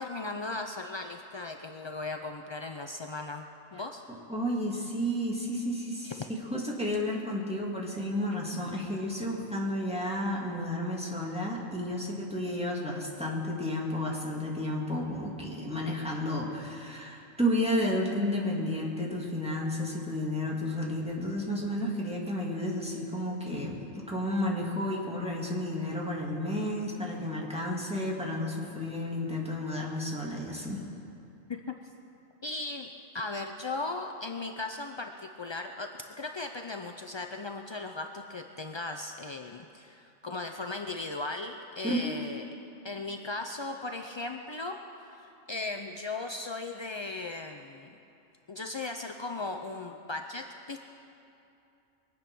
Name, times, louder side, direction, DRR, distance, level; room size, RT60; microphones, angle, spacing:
voice 1, 0.0-4.0 6.0-6.1 31.5-31.8 32.4-35.9 36.2-42.5 42.8-47.9 48.5-50.8, left 3 dB, 50° left, 5 dB, 0.3 m, -37 dB
voice 2, 4.1-30.8 41.8-42.2, left 1 dB, 5° right, -3 dB, 2.1 m, -32 dB
23.0 x 8.6 x 6.1 m, 2.7 s
omnidirectional pair, 1.3 m